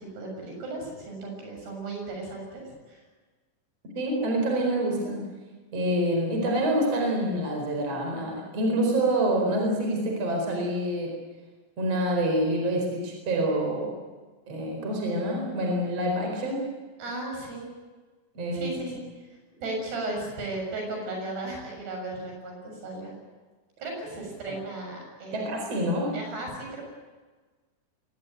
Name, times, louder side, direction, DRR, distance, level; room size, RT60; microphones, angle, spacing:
voice 1, 0.0-3.0 17.0-17.7 18.5-19.0 19.6-23.1 23.8-25.5 26.1-26.8, right 2 dB, 70° right, 1 dB, 8.9 m, -35 dB
voice 2, 4.0-5.3 5.7-11.2 11.8-13.9 14.5-16.6 18.4-18.7 24.5-24.6 25.3-26.2, right 1 dB, 35° right, 1 dB, 5.4 m, -26 dB
23.0 x 19.5 x 9.2 m, 1.4 s
omnidirectional pair, 4.8 m